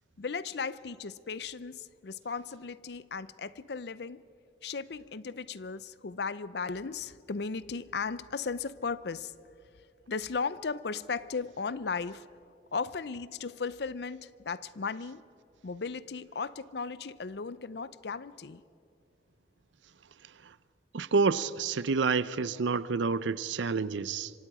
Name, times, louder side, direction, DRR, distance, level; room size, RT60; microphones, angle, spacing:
voice 1, 0.2-4.2 4.6-9.3 10.1-12.3 12.7-15.2 15.6-18.6, left 5 dB, 60° left, 17 dB, 0.6 m, -36 dB
voice 2, 20.9-24.3, right 4 dB, 80° right, 17 dB, 0.6 m, -28 dB
26.0 x 24.5 x 4.8 m, 2.4 s
head